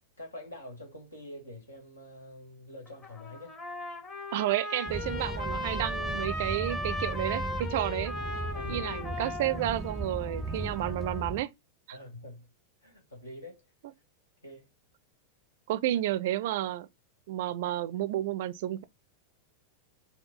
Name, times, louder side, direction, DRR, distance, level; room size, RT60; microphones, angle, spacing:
voice 1, 0.2-3.6 8.5-8.9 11.9-12.5 12.8-13.6 14.4-14.7, left 1 dB, 80° left, 1.8 m, -45 dB
Trumpet, 2.9-11.3, left 1 dB, 25° left, 1.1 m, -38 dB
voice 2, 4.3-8.2 8.7-11.5 11.9-12.0 15.7-16.9 17.3-18.8, right 14 dB, 55° right, 0.4 m, -31 dB
sound 1, 4.9-11.4, right 1 dB, ahead, 0.5 m, -37 dB
5.1 x 2.3 x 3.7 m
figure-of-eight pair, 90°, 0 cm